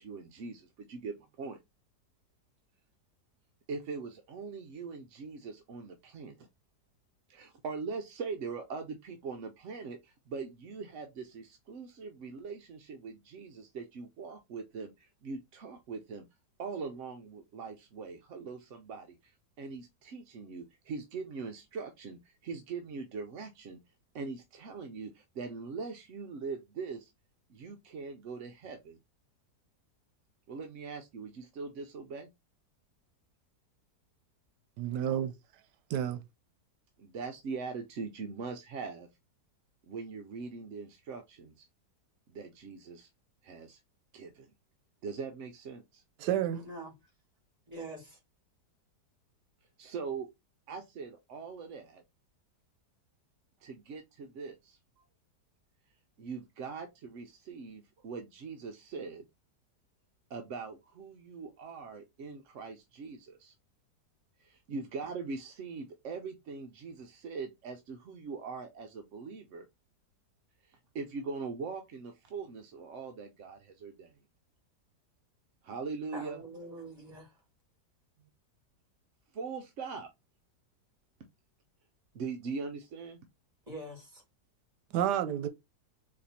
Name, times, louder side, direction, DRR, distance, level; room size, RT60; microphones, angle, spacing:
voice 1, 0.0-1.6 3.7-6.5 7.3-16.3 16.6-23.8 24.1-27.1 27.5-29.0 30.5-32.3 37.0-39.1 39.9-41.7 42.3-43.1 43.4-43.8 44.1-44.5 45.0-46.0 49.8-50.3 50.7-52.0 53.6-54.8 56.2-59.3 60.3-63.5 64.4-69.7 70.6-74.1 75.6-76.4 79.3-80.1 82.1-83.2, right 4 dB, 60° right, 0.8 m, -41 dB
voice 2, 34.8-35.3 35.9-36.2 46.2-46.6 84.9-85.5, right 10 dB, 85° right, 1.2 m, -30 dB
voice 3, 46.5-46.9 47.7-48.2 76.1-77.3 83.7-84.2, right 1 dB, 25° right, 2.5 m, -44 dB
4.3 x 2.9 x 4.1 m
omnidirectional pair, 1.7 m